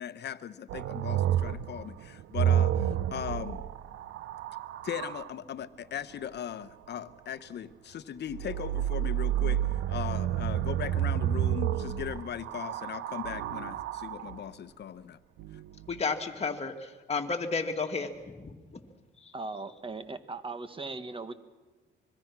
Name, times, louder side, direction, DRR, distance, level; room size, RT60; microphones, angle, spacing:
voice 1, 0.0-3.6 4.8-15.2, left 9 dB, 60° left, 14 dB, 1.0 m, -38 dB
sound 1, 0.7-5.3 8.3-14.4 15.4-16.0, right 11 dB, 85° right, 0.8 m, -30 dB
voice 2, 15.9-18.8 19.2-19.3, left 4 dB, 30° left, 4 dB, 2.2 m, -33 dB
voice 3, 19.3-21.3, right 3 dB, 25° right, 11 dB, 1.6 m, -38 dB
25.5 x 22.0 x 6.1 m, 1.2 s
cardioid pair, 90°, 20 cm